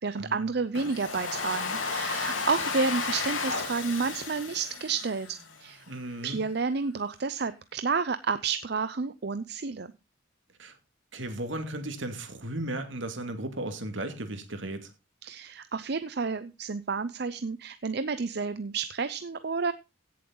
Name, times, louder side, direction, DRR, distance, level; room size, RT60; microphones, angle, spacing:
voice 1, 0.0-5.8 6.2-9.9 15.2-19.7, right 4 dB, 55° right, 0.6 m, -30 dB
Domestic sounds home sounds, 0.7-5.7, left 4 dB, 85° left, 3.1 m, -33 dB
voice 2, 5.9-6.4 10.6-10.7 11.1-14.9, right 1 dB, 75° right, 2.5 m, -35 dB
16.5 x 7.5 x 3.9 m
head